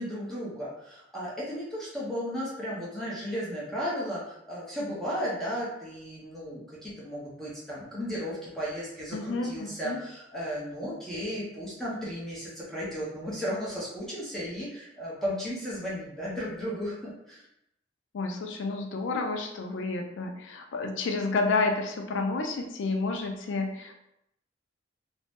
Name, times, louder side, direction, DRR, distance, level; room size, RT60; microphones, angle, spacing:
voice 1, 0.0-17.4, equal, ahead, -7 dB, 0.6 m, -35 dB
voice 2, 9.1-10.0 18.1-23.9, left 3 dB, 75° left, 4 dB, 0.4 m, -30 dB
2.6 x 2.0 x 3.3 m, 0.80 s
head